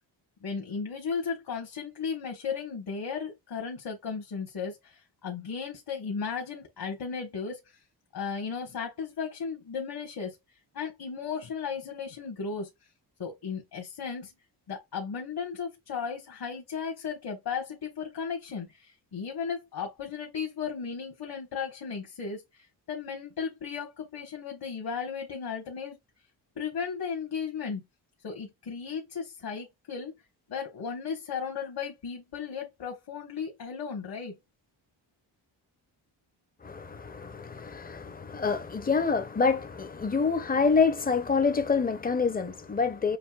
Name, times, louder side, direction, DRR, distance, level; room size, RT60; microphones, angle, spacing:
voice 1, 0.4-7.6 8.1-10.4 10.7-12.7 13.2-14.3 14.7-26.0 26.6-27.8 28.2-30.1 30.5-34.4, left 6 dB, 55° left, 1.4 m, -35 dB
voice 2, 36.6-43.2, left 5 dB, 20° left, 0.7 m, -27 dB
6.7 x 2.7 x 2.4 m
cardioid pair, 90°, 46 cm